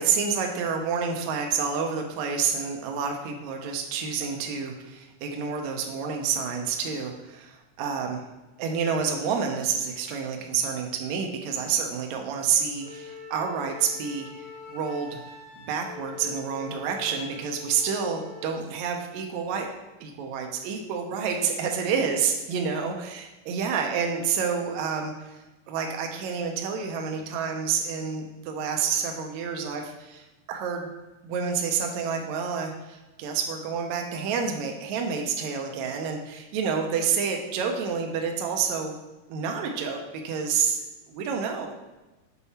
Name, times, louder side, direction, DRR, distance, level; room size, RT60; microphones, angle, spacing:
voice 1, 0.0-8.2 8.6-15.2 15.6-19.7 20.0-23.1 23.5-25.4 25.7-30.9 31.2-39.0 39.3-40.0 40.2-40.8 41.1-41.7, right 6 dB, 75° right, 3 dB, 1.8 m, -29 dB
Wind instrument woodwind instrument, 12.8-18.6, left 5 dB, 75° left, 3.1 m, -44 dB
7.2 x 4.5 x 4.2 m, 1.1 s
omnidirectional pair, 3.8 m